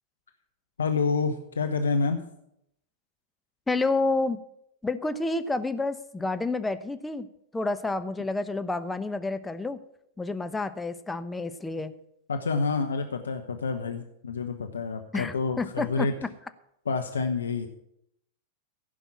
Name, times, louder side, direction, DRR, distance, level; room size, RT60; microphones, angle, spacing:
voice 1, 0.8-2.2 12.3-16.1 16.9-17.7, left 4 dB, 85° left, 6 dB, 1.0 m, -28 dB
voice 2, 3.7-4.4 4.8-7.3 7.5-9.8 10.2-11.9 15.1-16.1, left 3 dB, 10° left, 10 dB, 0.9 m, -29 dB
15.5 x 5.6 x 8.5 m, 0.77 s
hypercardioid pair, 100°, 0 cm